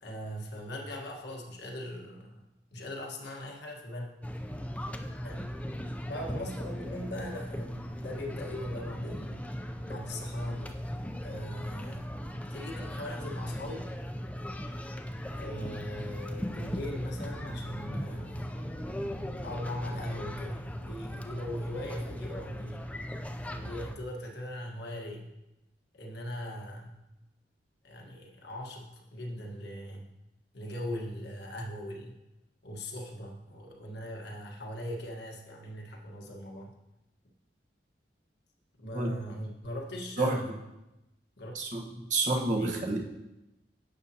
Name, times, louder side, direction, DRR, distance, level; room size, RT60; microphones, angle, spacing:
voice 1, 0.0-2.4 2.7-4.1 5.2-5.5 6.0-9.4 9.8-10.7 11.2-12.1 12.5-13.9 15.3-18.5 19.4-22.9 23.4-25.3 25.9-27.0 27.8-30.1 30.5-32.2 32.6-36.7 38.8-40.6 41.4-41.8 42.6-42.8, left 1 dB, 65° left, 0 dB, 1.4 m, -40 dB
sound 1, 4.2-24.0, equal, 10° left, 0.4 m, -38 dB
voice 2, 42.1-43.0, right 2 dB, 45° right, 1 dB, 1.2 m, -28 dB
10.5 x 7.4 x 2.8 m, 0.94 s
head